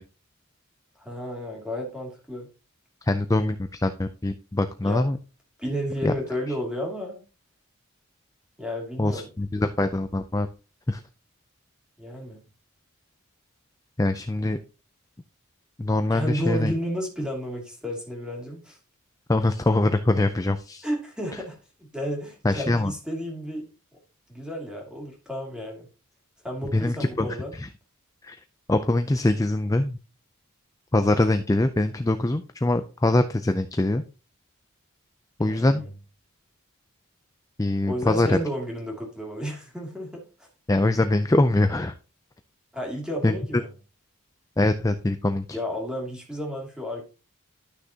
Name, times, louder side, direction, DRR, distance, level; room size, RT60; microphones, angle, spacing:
voice 1, 1.0-2.5 4.8-5.0 5.6-7.2 8.6-9.3 12.0-12.4 16.1-18.8 20.8-21.6 21.9-23.7 24.3-25.9 26.4-27.5 35.4-35.9 37.8-40.2 42.7-43.7 45.5-47.0, equal, 5° right, -1 dB, 2.6 m, -32 dB
voice 2, 3.0-5.2 6.0-6.1 9.0-10.5 10.9-11.0 14.0-14.6 15.8-16.7 19.3-20.9 21.3-21.4 22.4-22.9 26.7-27.7 28.2-28.4 28.7-30.0 30.9-34.0 35.4-35.8 37.6-38.4 40.7-41.9 43.2-43.4 44.6-45.4, left 2 dB, 15° left, 8 dB, 0.4 m, -23 dB
12.0 x 6.4 x 2.8 m, 0.32 s
head